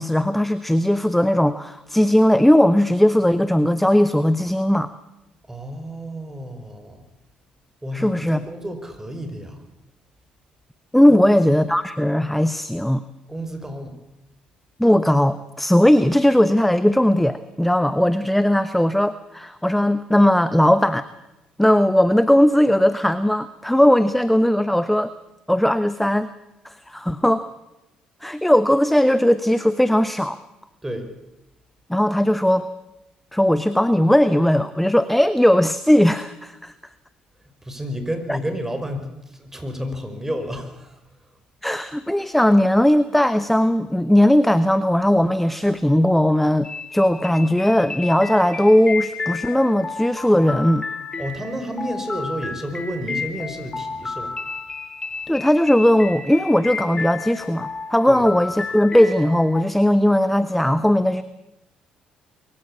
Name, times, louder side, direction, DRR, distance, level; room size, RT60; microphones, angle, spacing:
voice 1, 0.0-4.9 7.9-8.4 10.9-13.0 14.8-21.0 21.6-25.1 25.5-26.3 26.6-27.4 28.2-30.4 31.9-32.7 33.3-36.7 38.3-38.4 41.6-50.8 55.3-61.2, left 1 dB, 5° left, 13 dB, 1.0 m, -18 dB
voice 2, 5.5-7.0 7.8-9.6 11.2-11.3 13.3-14.0 30.8-31.1 37.6-41.0 51.2-54.3 58.1-58.2, equal, 10° right, 7 dB, 5.5 m, -31 dB
sound 1, 46.6-59.6, left 4 dB, 25° left, 2.3 m, -32 dB
23.0 x 15.5 x 8.6 m, 0.92 s
hypercardioid pair, 55°, 3 cm